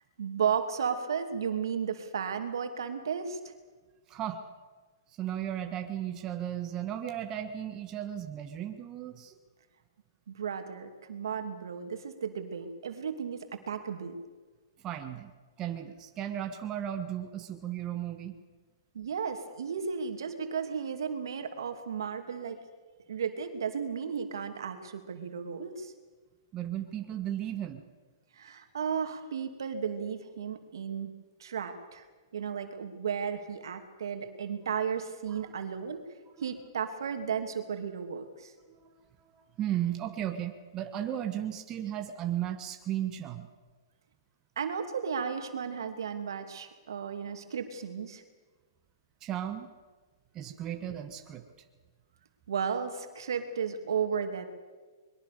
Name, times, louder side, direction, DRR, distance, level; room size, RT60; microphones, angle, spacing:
voice 1, 0.2-3.4 10.3-14.2 18.9-22.6 23.1-25.9 28.3-31.1 31.4-32.0 32.3-36.0 36.4-38.5 44.6-48.2 52.5-54.4, right 7 dB, 80° right, 6 dB, 2.8 m, -34 dB
voice 2, 4.1-4.4 5.2-9.3 14.8-15.3 15.6-18.4 26.5-27.8 35.4-35.5 38.7-38.9 39.3-43.5 49.2-49.7 50.3-51.5, right 11 dB, 25° right, 5 dB, 1.8 m, -35 dB
23.5 x 22.0 x 6.9 m, 1.4 s
hypercardioid pair, 140°, 2 cm